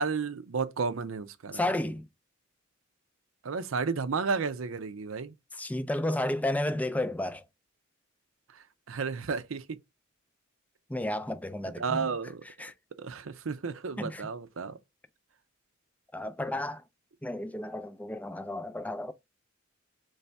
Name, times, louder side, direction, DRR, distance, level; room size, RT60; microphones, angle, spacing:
voice 1, 0.0-1.6 3.4-5.3 8.9-9.8 11.8-12.4 13.0-14.8, right 5 dB, 85° right, 0.6 m, -32 dB
voice 2, 1.5-2.1 5.5-7.4 10.9-12.1 12.6-12.7 14.0-14.3 16.1-16.8 17.2-19.1, left 1 dB, 10° left, 0.4 m, -32 dB
4.1 x 3.3 x 3.3 m
head